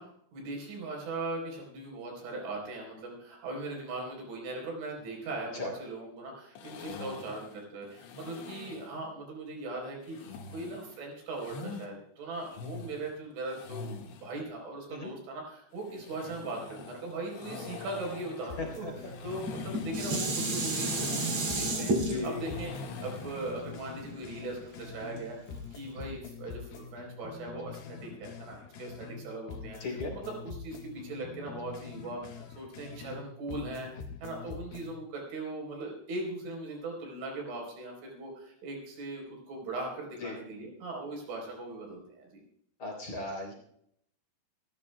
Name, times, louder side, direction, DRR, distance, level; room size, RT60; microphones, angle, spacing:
voice 1, 0.0-25.4 25.7-29.8 30.1-42.4, right 2 dB, 75° right, 0 dB, 6.6 m, -39 dB
sound 1, 6.6-9.0 10.0-11.9 12.3-14.3 15.7-23.6, left 5 dB, 80° left, 4.1 m, -45 dB
sound 2, 18.5-21.2 21.5-25.2 25.5-29.2 29.5-33.2 33.5-34.9, left 5 dB, 65° left, 2.9 m, -45 dB
voice 2, 18.6-18.9 22.1-22.4 29.8-30.1 40.2-40.3 42.8-43.5, left 3 dB, 35° left, -1 dB, 4.3 m, -36 dB
Dishes pots and pans, 19.3-24.6 25.2-25.3, right 2 dB, 35° right, 3.3 m, -32 dB
29.0 x 12.5 x 2.3 m, 0.70 s
omnidirectional pair, 5.4 m